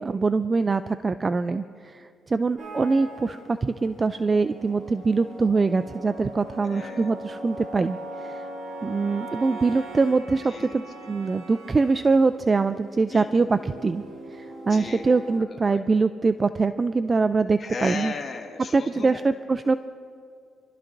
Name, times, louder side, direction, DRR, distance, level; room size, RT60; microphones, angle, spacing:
voice 1, 0.0-8.4 8.8-14.0 14.3-18.1 18.7-19.8, right 4 dB, 30° right, 11 dB, 0.3 m, -23 dB
sound 1, 2.6-15.4, right 1 dB, 50° right, 3.9 m, -40 dB
voice 2, 6.6-7.1 10.5-10.8 13.1-13.3 14.7-15.0 15.4-15.5 15.7-15.8 17.6-19.2, left 4 dB, 45° left, 2 dB, 1.7 m, -36 dB
28.5 x 12.5 x 2.6 m, 2.3 s
cardioid pair, 90°, 0 cm